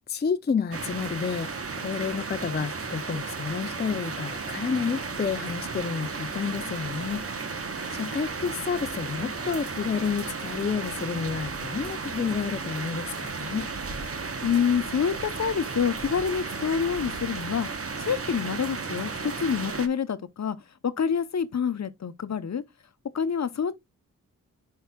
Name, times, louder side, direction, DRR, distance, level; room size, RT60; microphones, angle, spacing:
voice 1, 0.1-1.5 1.8-7.2 7.9-13.7, left 6 dB, 30° left, 0.5 m, -30 dB
sound 1, 0.7-19.9, right 4 dB, 45° right, 1.0 m, -34 dB
voice 2, 14.4-17.7 18.0-20.6 20.8-22.6 23.1-23.7, left 7 dB, 55° left, 0.8 m, -27 dB
10.5 x 4.7 x 2.3 m
cardioid pair, 50°, 32 cm